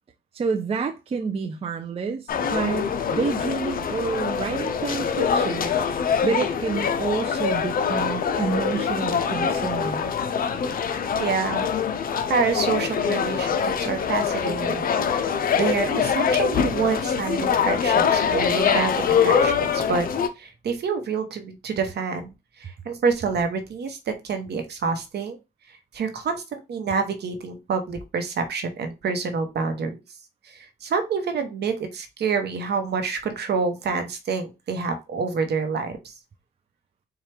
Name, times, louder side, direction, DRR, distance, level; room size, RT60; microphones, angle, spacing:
voice 1, 0.3-5.7 6.2-10.1, right 5 dB, 30° right, 0.5 m, -28 dB
sound 1, 2.3-20.3, left 7 dB, 45° left, 0.5 m, -24 dB
voice 2, 11.2-11.7 12.3-15.3 15.6-20.1 20.4-22.3 22.6-25.4 25.9-30.0 30.5-36.1, right 5 dB, 60° right, 0.9 m, -27 dB
4.4 x 2.4 x 3.3 m
cardioid pair, 90°, 20 cm